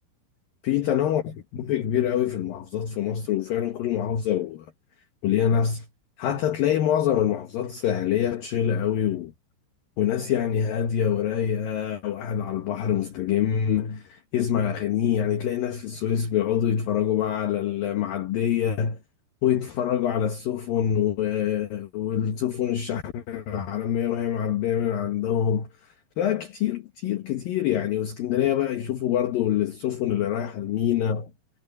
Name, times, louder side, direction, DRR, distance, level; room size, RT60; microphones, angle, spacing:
voice 1, 0.6-1.2 1.5-4.7 5.2-5.9 6.2-9.3 10.0-19.0 19.4-25.7 26.2-31.3, left 9 dB, 65° left, 2.6 m, -25 dB
omnidirectional pair, 5.4 m